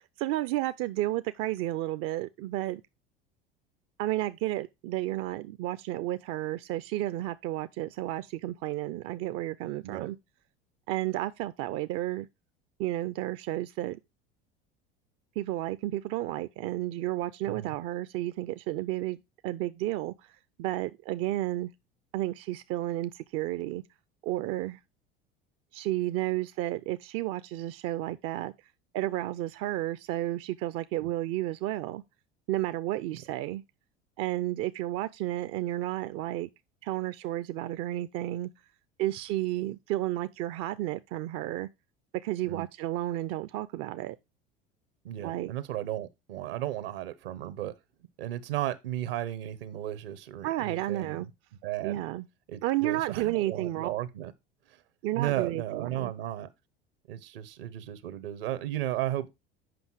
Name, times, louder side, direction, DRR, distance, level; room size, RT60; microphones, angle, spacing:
voice 1, 0.2-2.8 4.0-10.2 10.9-12.3 12.8-14.0 15.4-20.3 20.6-21.7 22.1-23.8 24.2-24.8 25.7-28.5 28.9-32.0 32.5-33.6 34.2-36.5 36.8-38.5 39.0-41.7 42.2-44.2 45.2-45.5 50.4-51.3 51.8-52.2 52.6-53.9 55.0-56.1, right 15 dB, 50° right, 0.5 m, -32 dB
voice 2, 45.0-47.7 48.2-51.3 51.6-52.0 52.5-54.3 54.7-54.8 55.1-56.5 57.1-59.3, right 13 dB, 75° right, 1.0 m, -34 dB
7.9 x 5.5 x 4.6 m
hypercardioid pair, 75°, 29 cm